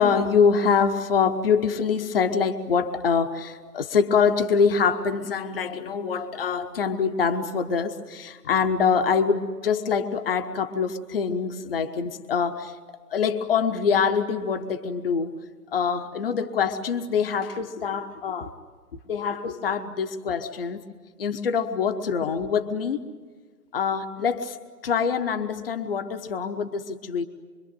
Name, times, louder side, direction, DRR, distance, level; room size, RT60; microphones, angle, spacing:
voice 1, 0.0-15.3 15.7-18.5 19.1-20.8 21.2-23.0 23.7-24.6 24.8-27.2, left 6 dB, 40° left, 8 dB, 1.3 m, -24 dB
25.5 x 25.0 x 9.3 m, 1.5 s
figure-of-eight pair, 150°, 46 cm